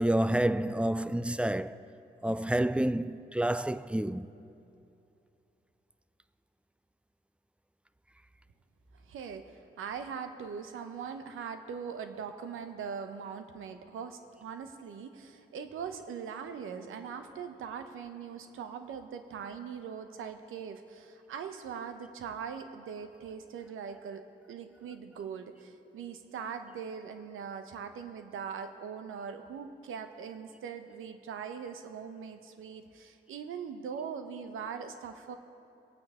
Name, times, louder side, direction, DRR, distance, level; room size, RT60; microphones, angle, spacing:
voice 1, 0.0-1.8 2.2-4.3, right 1 dB, 5° right, 0.4 m, -29 dB
voice 2, 9.0-35.4, right 6 dB, 80° right, 0.9 m, -41 dB
22.5 x 9.0 x 3.7 m
supercardioid pair, 45°, 21 cm